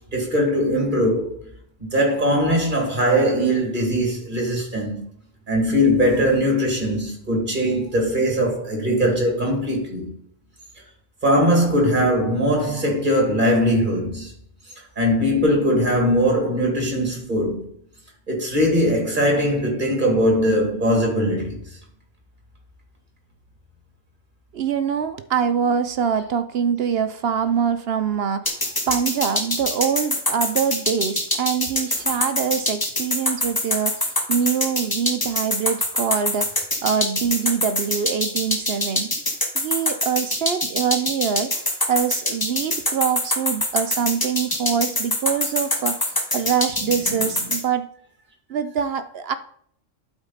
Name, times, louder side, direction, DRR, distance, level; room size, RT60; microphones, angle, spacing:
voice 1, 0.1-1.4 1.8-5.1 5.5-10.1 11.2-14.3 15.0-17.7 18.3-21.6 46.7-47.5, equal, 40° right, 2.5 m, -20 dB
voice 2, 24.5-39.1 39.5-47.8 48.5-49.4, right 7 dB, 60° right, 0.7 m, -24 dB
sound 1, 28.5-47.6, left 1 dB, 20° left, 1.2 m, -23 dB
11.5 x 4.4 x 4.0 m
omnidirectional pair, 1.3 m